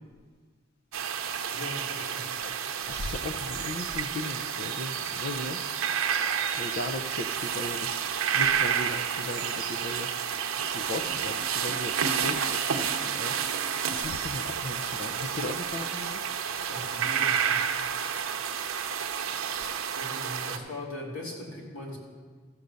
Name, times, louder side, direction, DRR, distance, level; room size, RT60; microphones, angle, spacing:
sound 1, 0.9-20.6, right 7 dB, 85° right, 0.7 m, -30 dB
voice 1, 1.5-2.3 16.7-17.6 19.9-22.0, left 1 dB, 75° left, -3 dB, 2.7 m, -39 dB
voice 2, 2.8-5.6 6.6-13.6 13.9-16.2, left 2 dB, 45° left, 4 dB, 0.5 m, -37 dB
14.5 x 5.1 x 6.8 m, 1.5 s
head